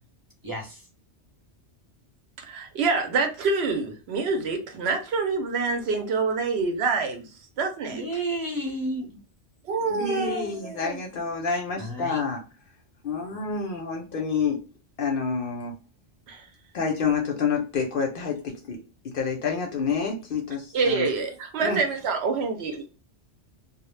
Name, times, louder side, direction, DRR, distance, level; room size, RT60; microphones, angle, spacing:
voice 1, 0.4-0.9 7.9-9.2 11.8-12.2, right 1 dB, 25° right, -1 dB, 0.6 m, -31 dB
voice 2, 2.5-7.3 7.6-8.0 9.6-11.0 16.3-16.4 20.7-22.9, right 4 dB, 70° right, 4 dB, 0.8 m, -26 dB
voice 3, 9.9-12.4 13.0-14.6 15.0-15.7 16.7-18.8 19.0-21.1 21.6-21.8, left 5 dB, 60° left, 2 dB, 0.6 m, -28 dB
2.1 x 2.0 x 3.0 m, 0.33 s
omnidirectional pair, 1.2 m